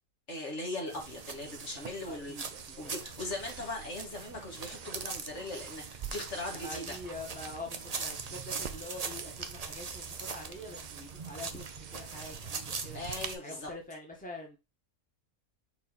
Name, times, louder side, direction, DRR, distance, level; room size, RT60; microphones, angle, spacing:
voice 1, 0.3-2.4 2.8-7.0 12.9-13.7, left 2 dB, 55° left, 2.0 m, -39 dB
sound 1, 0.9-13.4, right 5 dB, 35° right, 0.6 m, -42 dB
sound 2, 1.0-13.3, right 8 dB, 80° right, 0.4 m, -48 dB
voice 2, 2.0-2.9 6.5-13.0 13.4-14.6, left 2 dB, 5° left, 1.6 m, -45 dB
5.5 x 4.3 x 4.1 m
omnidirectional pair, 1.5 m